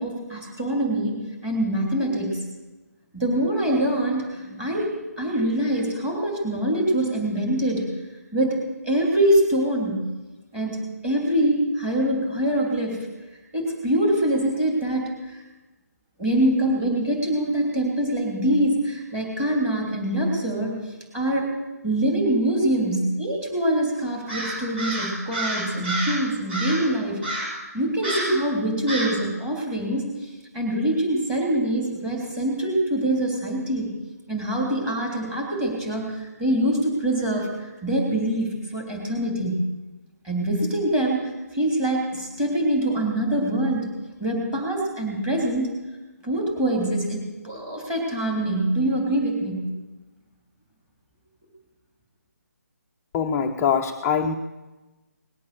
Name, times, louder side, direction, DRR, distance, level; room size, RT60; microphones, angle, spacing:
voice 1, 0.0-2.4 3.1-7.9 8.3-10.0 10.5-13.1 13.5-15.4 16.2-21.5 21.8-27.3 27.7-33.9 34.3-39.5 40.2-45.7 46.2-49.6, right 1 dB, 10° right, 0 dB, 3.3 m, -24 dB
Crow, 24.3-26.2 26.5-26.9 27.2-27.6 28.0-28.4 28.9-29.2, right 1 dB, 40° right, 5.8 m, -29 dB
voice 2, 53.1-54.4, left 7 dB, 10° left, 2 dB, 0.4 m, -23 dB
19.0 x 8.5 x 6.9 m, 1.2 s
hypercardioid pair, 160°, 9 cm